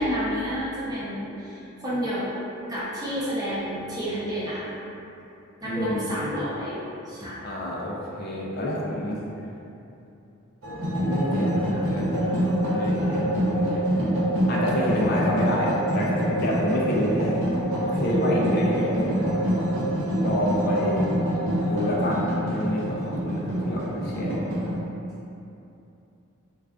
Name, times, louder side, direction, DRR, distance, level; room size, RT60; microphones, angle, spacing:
voice 1, 0.0-2.3 2.7-4.7 5.6-6.8 7.1-7.5, equal, 20° right, -9 dB, 0.5 m, -30 dB
voice 2, 5.7-6.1 7.4-9.2 11.0-12.1 12.7-13.9 14.5-17.4 17.8-19.3 20.2-21.1 21.7-24.5, left 1 dB, 50° left, -3 dB, 0.4 m, -28 dB
sound 1, 10.6-24.8, equal, 75° right, 0.6 m, -25 dB
2.3 x 2.3 x 2.3 m, 2.8 s
head